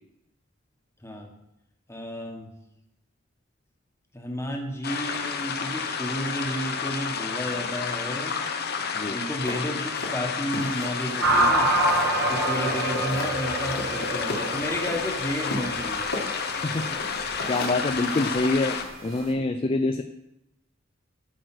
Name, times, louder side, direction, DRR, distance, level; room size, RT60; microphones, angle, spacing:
voice 1, 1.9-2.5 4.1-8.4 9.1-11.7 12.2-16.1, equal, 15° left, 1 dB, 1.4 m, -32 dB
sound 1, 4.8-18.8, left 6 dB, 50° left, 0.9 m, -31 dB
sound 2, 9.5-12.1 12.4-13.3 13.7-15.0 15.5-19.3, left 2 dB, 70° left, 2.0 m, -36 dB
sound 3, 11.2-19.3, right 1 dB, 80° right, 1.9 m, -27 dB
voice 2, 16.5-16.9 17.2-20.0, left 2 dB, 30° left, 7 dB, 0.4 m, -26 dB
12.5 x 4.8 x 6.1 m, 0.88 s
head